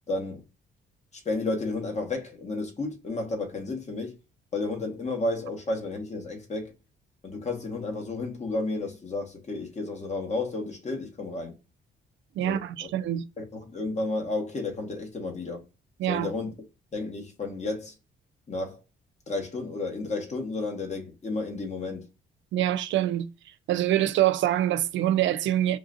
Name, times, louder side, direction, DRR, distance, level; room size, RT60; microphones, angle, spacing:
voice 1, 0.1-0.4 1.2-4.2 4.5-6.7 7.2-11.5 12.4-12.9 13.4-15.6 16.1-16.5 16.9-17.9 18.5-18.8 19.3-22.1, left 2 dB, 35° left, 1.3 m, -32 dB
voice 2, 12.4-13.2 16.0-16.3 22.5-23.3 23.7-25.8, right 12 dB, 70° right, 0.4 m, -25 dB
3.7 x 2.4 x 2.5 m
cardioid pair, 90°, 20 cm